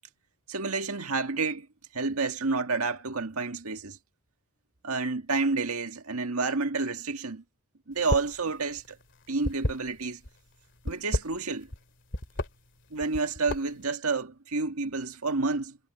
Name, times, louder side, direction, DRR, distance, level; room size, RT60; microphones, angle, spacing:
voice 1, 0.5-1.7 1.9-4.0 4.8-7.4 7.9-9.0 9.3-10.2 10.8-11.7 12.9-15.8, right 3 dB, 90° right, 1.8 m, -29 dB
sound 1, 8.0-8.4 8.7-10.3 10.8-11.8 12.1-12.5 13.0-13.8, left 1 dB, 55° left, 2.6 m, -31 dB
head